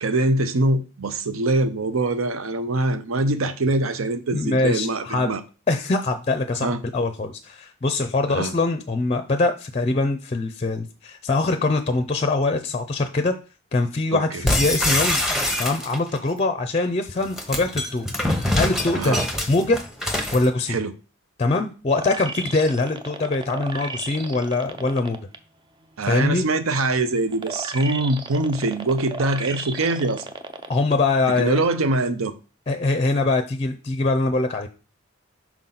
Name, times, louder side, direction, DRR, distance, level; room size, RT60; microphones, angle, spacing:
voice 1, 0.0-5.4 6.6-6.8 8.3-8.6 14.1-14.4 18.9-19.2 20.7-20.9 26.0-30.3 31.3-32.3, right 2 dB, 90° right, 0.7 m, -23 dB
voice 2, 4.3-5.3 5.7-13.3 13.7-15.2 15.6-18.1 18.5-19.2 19.5-19.8 20.3-20.8 21.4-25.2 26.1-26.4 30.7-31.6 32.7-34.7, left 3 dB, 30° left, 0.5 m, -23 dB
sound 1, 14.5-16.2 17.2-20.5, left 1 dB, ahead, 0.9 m, -24 dB
sound 2, 21.9-25.4 25.8-30.9 31.4-31.5, right 3 dB, 25° right, 0.5 m, -35 dB
5.8 x 4.5 x 3.9 m
head